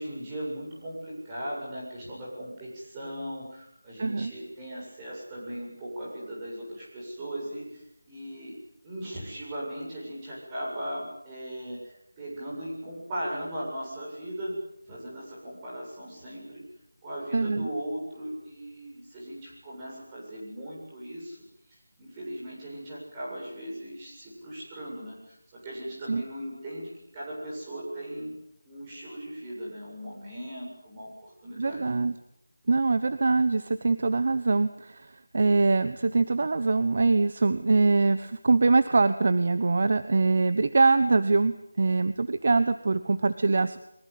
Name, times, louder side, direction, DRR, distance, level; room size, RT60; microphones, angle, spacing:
voice 1, 0.0-8.5 8.8-14.6 14.9-16.6 17.0-21.4 22.0-25.4 25.6-28.3 28.6-31.8, equal, 15° right, -5 dB, 7.6 m, -38 dB
voice 2, 4.0-4.3 17.3-17.7 26.1-26.2 31.6-32.1 32.7-43.8, right 3 dB, 40° right, 12 dB, 1.1 m, -23 dB
23.5 x 23.0 x 8.6 m, 0.76 s
figure-of-eight pair, 175°, 0 cm